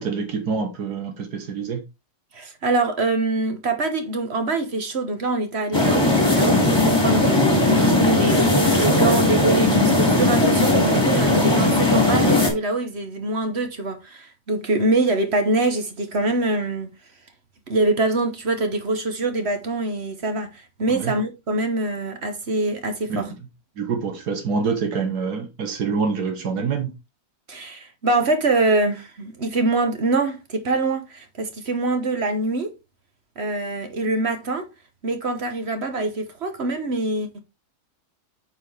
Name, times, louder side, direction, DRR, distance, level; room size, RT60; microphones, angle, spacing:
voice 1, 0.0-1.8 20.9-21.1 23.1-23.3 23.8-26.9, right 5 dB, 75° right, 1.7 m, -26 dB
voice 2, 2.3-16.9 17.7-23.3 27.5-32.7 33.4-34.7 35.0-37.4, right 2 dB, 45° right, 1.3 m, -24 dB
sound 1, 5.7-12.5, left 2 dB, 15° left, 2.2 m, -18 dB
8.4 x 4.8 x 3.3 m
omnidirectional pair, 1.7 m